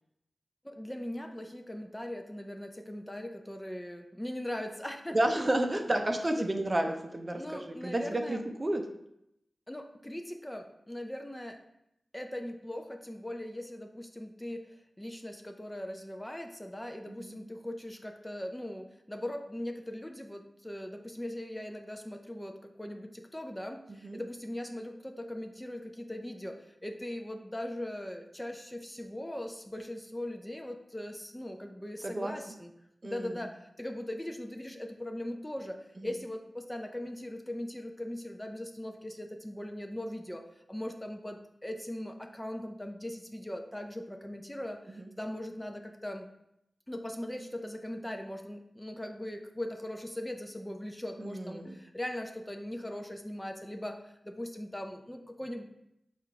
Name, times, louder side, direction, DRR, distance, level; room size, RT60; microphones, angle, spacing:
voice 1, 0.6-5.2 5.9-6.0 6.4-6.5 7.4-8.4 9.7-11.6 12.1-32.7 33.0-46.3 46.9-55.6, left 1 dB, 15° left, 4 dB, 0.5 m, -40 dB
voice 2, 5.1-8.8 17.1-17.4 23.9-24.2 32.0-32.3 33.0-33.3 45.0-45.1 51.2-51.8, right 1 dB, 35° right, 4 dB, 0.5 m, -31 dB
4.9 x 2.4 x 4.4 m, 0.80 s
cardioid pair, 50°, 0 cm